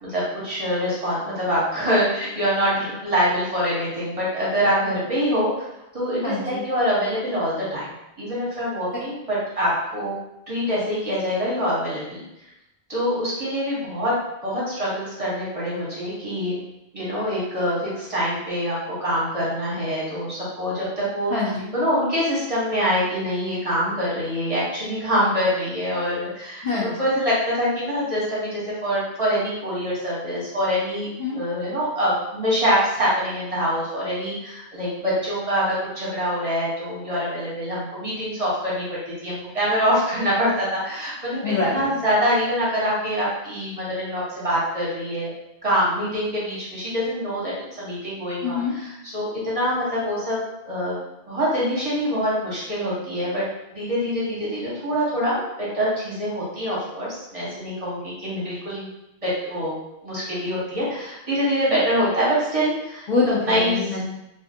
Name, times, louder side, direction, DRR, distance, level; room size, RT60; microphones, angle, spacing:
voice 1, 0.0-5.7 5.9-7.9 8.2-10.2 10.5-12.2 12.9-14.1 14.4-16.6 16.9-21.3 21.7-31.1 31.3-38.8 39.2-45.3 45.6-47.5 47.8-50.4 50.7-51.0 51.3-53.4 53.7-58.9 59.2-59.7 60.0-63.1 63.4-63.7, equal, 35° right, -7 dB, 0.8 m, -25 dB
voice 2, 6.2-6.6 21.3-21.7 26.6-27.0 31.2-31.4 41.4-41.9 48.4-48.7 63.1-64.0, left 3 dB, 55° left, -6 dB, 0.5 m, -24 dB
2.5 x 2.4 x 2.5 m, 0.87 s
omnidirectional pair, 1.1 m